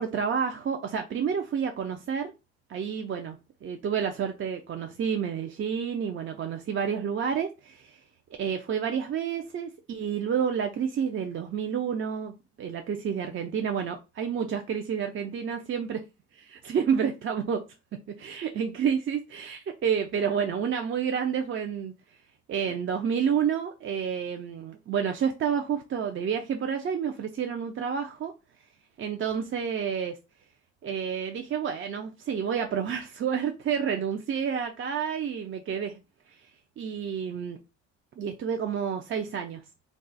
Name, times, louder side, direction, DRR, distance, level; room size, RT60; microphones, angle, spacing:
voice 1, 0.0-2.3 2.7-8.0 8.4-16.0 16.4-17.6 18.2-21.9 22.5-28.3 29.0-30.2 30.8-36.0 36.3-36.5 36.8-37.6 38.2-39.6, right 7 dB, 45° right, 0.4 m, -29 dB
2.3 x 2.3 x 3.9 m
cardioid pair, 90°, 30 cm